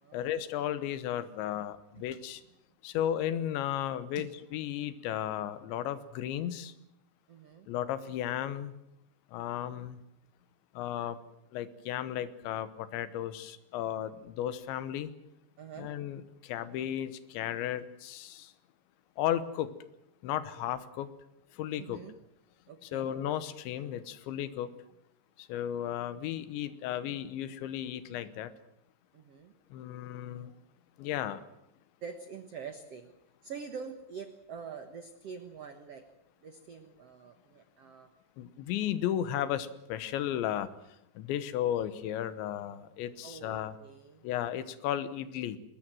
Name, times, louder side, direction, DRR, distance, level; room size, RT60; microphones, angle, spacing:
voice 1, 0.1-2.4 2.8-6.7 7.7-8.7 9.3-10.0 10.8-11.2 11.5-15.1 15.8-18.5 19.2-19.7 20.2-21.1 21.5-22.0 22.8-24.8 25.4-28.5 29.7-30.5 31.0-31.5 38.4-40.7 41.2-43.8 44.2-45.6, left 11 dB, 85° left, 14 dB, 3.4 m, -34 dB
voice 2, 7.3-7.7 15.6-15.9 21.8-22.1 22.7-23.1 29.1-29.5 32.0-33.1 33.4-36.1 36.4-38.1 43.2-44.3, right 6 dB, 90° right, 7 dB, 1.3 m, -45 dB
22.0 x 20.5 x 7.7 m, 0.84 s
omnidirectional pair, 5.1 m